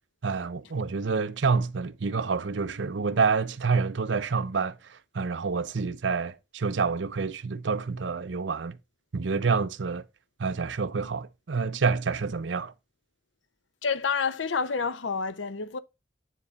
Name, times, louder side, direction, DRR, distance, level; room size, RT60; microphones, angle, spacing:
voice 1, 0.2-8.8 9.1-10.0 10.4-12.7, right 4 dB, 70° right, 0.7 m, -28 dB
voice 2, 13.8-15.8, left 5 dB, 85° left, 0.7 m, -28 dB
9.3 x 3.8 x 4.1 m
head